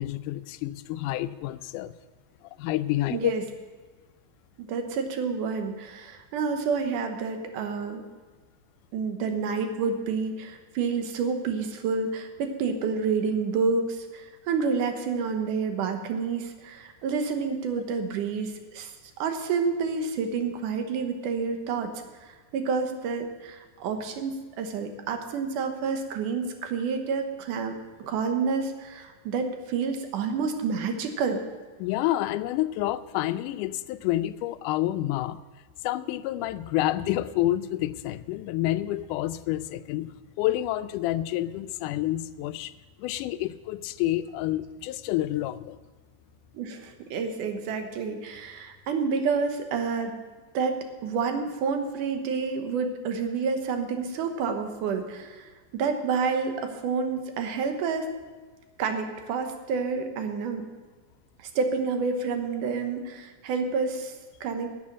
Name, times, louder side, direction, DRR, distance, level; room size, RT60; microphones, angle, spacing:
voice 1, 0.0-1.9 2.6-3.3 17.4-17.5 31.8-35.4 35.8-42.7 43.0-45.8, left 14 dB, 90° left, 14 dB, 2.1 m, -28 dB
voice 2, 3.1-3.4 4.6-8.0 8.9-21.9 22.2-31.4 46.5-50.2 50.5-58.1 58.8-60.7 61.4-64.1 64.4-64.7, right 5 dB, 85° right, 6 dB, 2.7 m, -29 dB
11.5 x 7.1 x 8.6 m, 1.3 s
omnidirectional pair, 3.6 m